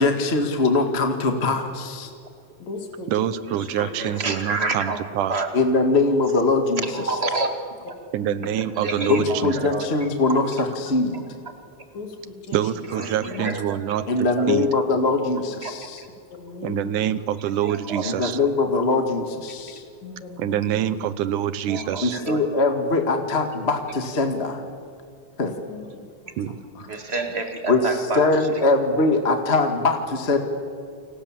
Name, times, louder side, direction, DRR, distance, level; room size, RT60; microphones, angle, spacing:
voice 1, 0.0-2.1 3.8-3.9 5.5-6.8 9.1-11.2 14.1-16.0 18.0-19.8 22.0-24.6 25.4-25.5 27.7-27.8 28.1-30.4, left 3 dB, 25° left, 5 dB, 1.5 m, -22 dB
voice 2, 2.6-3.1 3.8-4.0 8.2-8.5 11.9-12.9 13.3-13.5 16.3-17.1 20.0-20.8 25.4-26.0 26.5-26.9, left 4 dB, 65° left, 3 dB, 4.2 m, -38 dB
voice 3, 3.1-5.3 8.1-9.7 12.5-14.0 14.5-14.7 16.6-18.4 20.4-22.2 26.4-26.5, right 10 dB, 90° right, 15 dB, 2.5 m, -26 dB
voice 4, 4.0-5.5 6.8-7.6 7.9-8.0 8.6-10.4 11.1-11.2 12.9-14.5 15.6-15.7 17.5-18.5 21.6-22.4 26.9-28.5, right 3 dB, 25° right, 6 dB, 1.9 m, -30 dB
29.0 x 26.0 x 7.4 m, 2.3 s
omnidirectional pair, 3.5 m